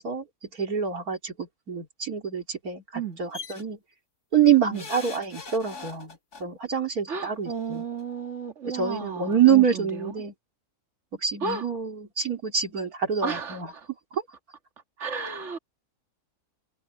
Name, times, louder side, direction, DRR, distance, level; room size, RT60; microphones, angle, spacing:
voice 1, 0.0-3.8 4.3-7.8 8.7-10.3 11.1-13.7, right 8 dB, 70° right, 3.3 m, -26 dB
sound 1, 3.3-3.6 4.7-6.4 7.6-7.7 8.0-8.1, left 3 dB, 85° left, 3.3 m, -40 dB
voice 2, 7.1-10.1 11.4-11.7 13.2-13.9 15.0-15.6, right 5 dB, 50° right, 2.5 m, -33 dB
omnidirectional pair, 1.6 m